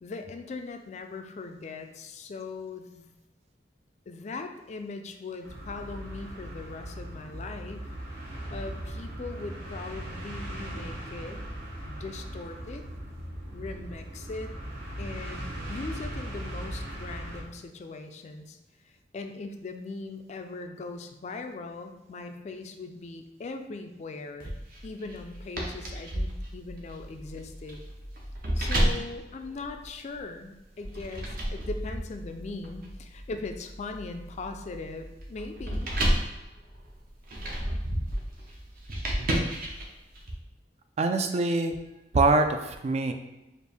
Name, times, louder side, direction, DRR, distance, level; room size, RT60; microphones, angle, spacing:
voice 1, 0.0-3.1 4.1-7.9 8.2-11.4 11.9-12.9 13.5-14.6 15.0-18.6 18.8-24.5 24.8-27.8 28.5-35.9, left 3 dB, 40° left, 6 dB, 0.3 m, -40 dB
sound 1, 5.4-17.4, right 1 dB, 80° right, 0.8 m, -38 dB
sound 2, 24.4-30.2 30.8-40.3, right 1 dB, 55° right, 0.7 m, -32 dB
voice 2, 41.0-41.7 42.1-43.1, right 3 dB, 40° right, 6 dB, 0.3 m, -24 dB
4.4 x 2.5 x 3.3 m, 0.98 s
head